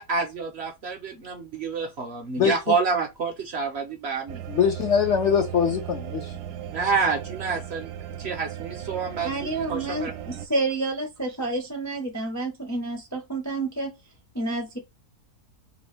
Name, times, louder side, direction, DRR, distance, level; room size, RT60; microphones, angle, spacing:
voice 1, 0.0-4.4 6.7-7.9 8.2-10.1, right 5 dB, 60° right, 0.7 m, -28 dB
sound 1, 4.3-10.5, right 11 dB, 80° right, 1.1 m, -37 dB
voice 2, 4.5-6.3, left 7 dB, 65° left, 0.7 m, -22 dB
voice 3, 9.2-13.9 14.3-14.8, right 2 dB, 25° left, 0.4 m, -29 dB
3.1 x 2.4 x 3.1 m
omnidirectional pair, 1.6 m